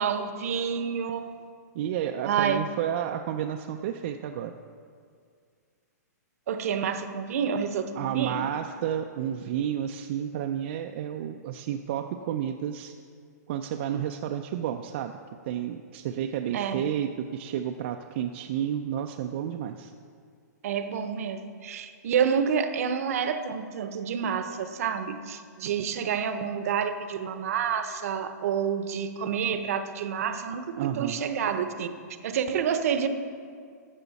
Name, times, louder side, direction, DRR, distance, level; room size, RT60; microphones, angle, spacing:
voice 1, 0.0-1.3 2.2-2.6 6.5-8.5 16.5-16.8 20.6-31.9 32.2-33.1, right 7 dB, 55° right, 10 dB, 0.8 m, -28 dB
voice 2, 1.7-4.6 8.0-12.9 13.5-15.2 15.5-19.9 30.8-31.2, right 10 dB, 40° right, 5 dB, 0.4 m, -31 dB
13.0 x 7.1 x 4.1 m, 2.2 s
hypercardioid pair, 160°, 10 cm